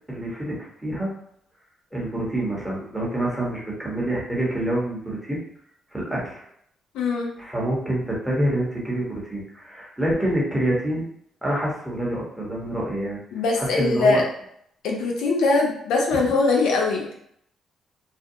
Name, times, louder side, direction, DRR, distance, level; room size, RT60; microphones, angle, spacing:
voice 1, 0.1-0.5 0.8-1.1 1.9-5.4 5.9-6.4 7.4-11.1 11.4-13.2 13.6-14.2 16.2-16.3, right 1 dB, 5° right, -5 dB, 1.0 m, -26 dB
voice 2, 6.9-7.3 13.3-14.2 14.8-17.1, left 3 dB, 90° left, -1 dB, 0.5 m, -21 dB
2.5 x 2.1 x 2.7 m, 0.70 s
cardioid pair, 90°, 0 cm